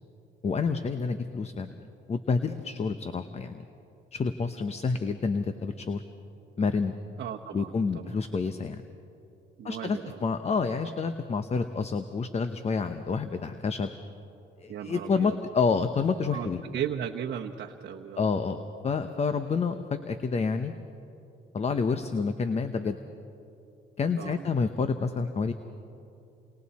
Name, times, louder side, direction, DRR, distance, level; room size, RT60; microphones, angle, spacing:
voice 1, 0.4-1.7 2.1-3.6 4.1-6.0 6.6-6.9 7.5-8.8 9.6-13.9 14.6-16.6 18.2-18.6 18.8-20.7 21.5-23.0 24.0-25.5, left 5 dB, 35° left, 9 dB, 0.9 m, -28 dB
voice 2, 7.2-8.2 9.6-10.2 14.7-15.4 16.3-18.3 24.2-24.5, right 9 dB, 60° right, 1 dB, 1.0 m, -36 dB
29.5 x 25.0 x 4.3 m, 2.7 s
cardioid pair, 100°, 20 cm